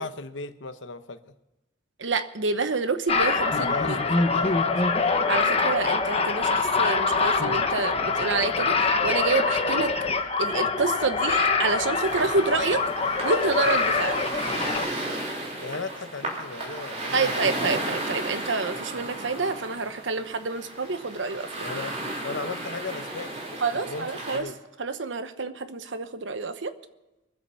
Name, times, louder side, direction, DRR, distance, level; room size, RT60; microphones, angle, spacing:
voice 1, 0.0-1.3 3.6-5.1 5.4-5.5 15.6-17.8 21.6-21.9 22.2-24.6, left 3 dB, 75° left, 10 dB, 1.0 m, -37 dB
voice 2, 2.0-4.0 5.3-9.9 10.3-12.8 13.2-14.2 17.1-21.7 23.6-24.4 24.8-26.7, right 4 dB, 75° right, 10 dB, 1.0 m, -28 dB
sound 1, 3.1-14.9, left 4 dB, 30° left, 1.1 m, -24 dB
sound 2, 12.0-24.4, right 1 dB, 35° right, 3.3 m, -34 dB
23.0 x 8.0 x 5.6 m, 1.0 s
head